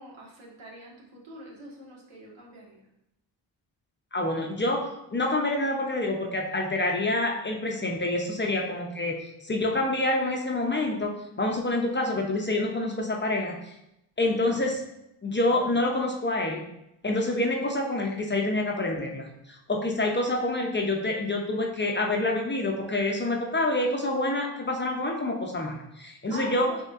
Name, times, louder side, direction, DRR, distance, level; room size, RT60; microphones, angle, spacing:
voice 1, 0.0-2.9 26.3-26.8, right 2 dB, 70° right, -3 dB, 1.4 m, -44 dB
voice 2, 4.1-4.9 5.1-9.1 9.4-11.1 11.4-13.6 14.2-14.8 15.2-16.7 17.0-26.7, left 2 dB, 25° left, 1 dB, 0.5 m, -27 dB
5.2 x 2.9 x 2.4 m, 0.85 s
cardioid pair, 60°, 48 cm